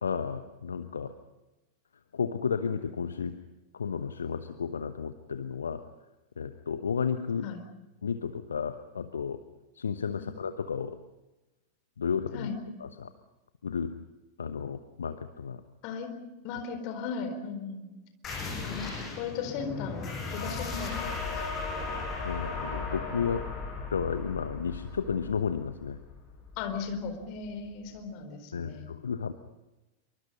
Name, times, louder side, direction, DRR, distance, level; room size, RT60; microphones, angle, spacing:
voice 1, 0.0-1.1 2.1-3.4 3.7-5.8 6.4-7.5 8.0-9.4 9.7-11.0 12.0-12.5 12.8-13.1 13.6-13.9 14.4-15.6 22.2-23.5 23.9-26.0 28.5-29.3, left 6 dB, 70° left, 11 dB, 1.0 m, -32 dB
voice 2, 16.4-17.9 18.6-18.9 19.2-21.1 26.6-28.9, left 5 dB, 45° left, 7 dB, 4.2 m, -36 dB
sound 1, 18.2-27.5, left 4 dB, 25° left, 6.7 m, -37 dB
26.5 x 24.0 x 5.5 m, 1.0 s
figure-of-eight pair, 90°, 0 cm